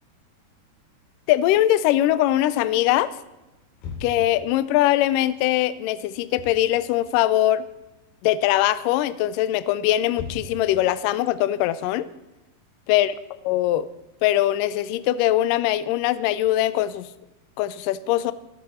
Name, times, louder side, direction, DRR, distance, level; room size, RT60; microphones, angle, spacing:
voice 1, 1.3-3.1 4.0-7.7 8.2-12.1 12.9-13.1 13.5-13.9 14.2-17.1 17.6-18.3, left 14 dB, 85° left, 15 dB, 1.9 m, -21 dB
sound 1, 3.8-4.4 6.2-6.6 7.0-7.9 8.2-8.6 9.3-10.7, left 4 dB, 70° left, 4.5 m, -38 dB
25.5 x 8.6 x 4.3 m, 0.97 s
omnidirectional pair, 4.6 m